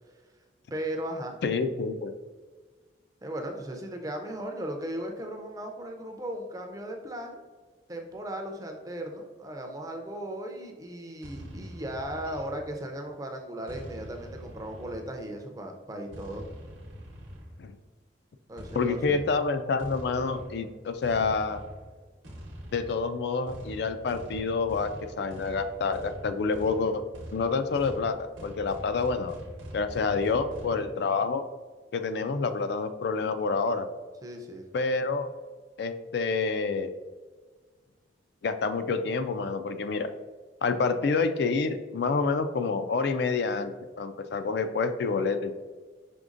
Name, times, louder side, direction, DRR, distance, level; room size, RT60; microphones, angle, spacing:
voice 1, 0.7-1.4 3.2-7.4 7.9-16.4 18.5-19.2 34.2-34.6, right 1 dB, 20° right, 3 dB, 0.5 m, -37 dB
voice 2, 1.4-2.1 17.6-17.7 18.7-21.6 22.7-24.9 25.2-27.0 27.3-29.4 29.7-31.5 31.9-33.9 34.7-35.3 35.8-36.9 38.4-40.1 40.6-45.6, left 4 dB, 60° left, 10 dB, 0.3 m, -28 dB
sound 1, 11.2-13.0 13.7-15.4 16.1-17.8 18.6-30.8, equal, 80° right, 0.9 m, -44 dB
5.1 x 3.4 x 2.5 m, 1.4 s
head